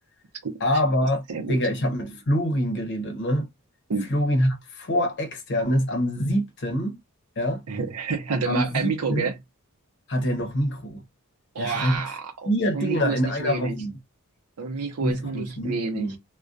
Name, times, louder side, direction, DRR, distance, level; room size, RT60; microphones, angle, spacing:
voice 1, 0.6-1.2 1.5-3.5 4.1-7.0 7.4-7.6 8.5-9.3 10.1-11.0 11.6-12.0 12.5-13.9 15.0-16.2, equal, 55° left, 0.7 m, -25 dB
voice 2, 7.7-9.3 11.5-13.8 14.6-16.2, right 4 dB, 80° right, 0.7 m, -29 dB
2.3 x 2.2 x 2.5 m
head